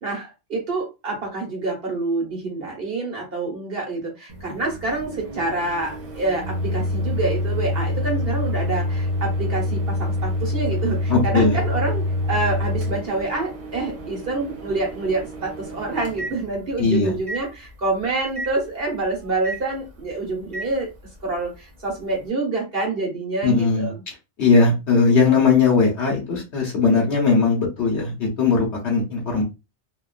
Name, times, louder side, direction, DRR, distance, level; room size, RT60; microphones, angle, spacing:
voice 1, 0.0-20.9 21.2-24.0, right 3 dB, 60° right, 0 dB, 1.2 m, -27 dB
Microwave oven, 4.3-16.8 17.3-17.4 18.4-18.5 19.4-19.6 20.5-20.7, left 1 dB, 35° right, 0.6 m, -27 dB
voice 2, 11.1-11.6 16.8-17.1 23.4-23.9 24.4-29.4, left 4 dB, 75° left, -2 dB, 1.1 m, -19 dB
2.9 x 2.2 x 2.4 m, 0.26 s
omnidirectional pair, 1.2 m